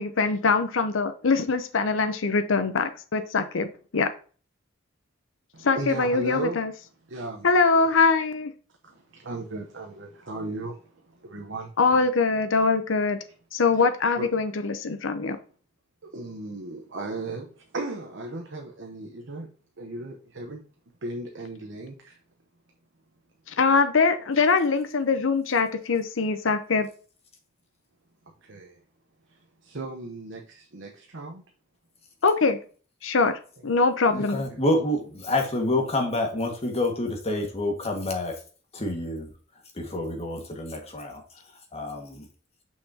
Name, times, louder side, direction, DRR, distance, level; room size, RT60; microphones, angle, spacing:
voice 1, 0.0-3.7 3.9-4.1 5.6-6.7 7.4-8.5 11.8-13.2 13.5-15.4 23.5-26.9 32.2-32.6 33.0-34.4, left 4 dB, 75° left, 0.7 m, -23 dB
voice 2, 5.5-6.6 7.1-7.9 8.8-11.7 14.2-14.3 16.0-19.5 19.8-20.6 21.0-22.2 28.4-28.8 29.6-31.5 34.1-34.6, right 2 dB, 65° right, 0.9 m, -36 dB
voice 3, 34.1-38.4 38.7-39.3 39.7-41.4 41.7-42.3, left 1 dB, 30° left, 1.7 m, -28 dB
6.5 x 5.8 x 2.8 m
head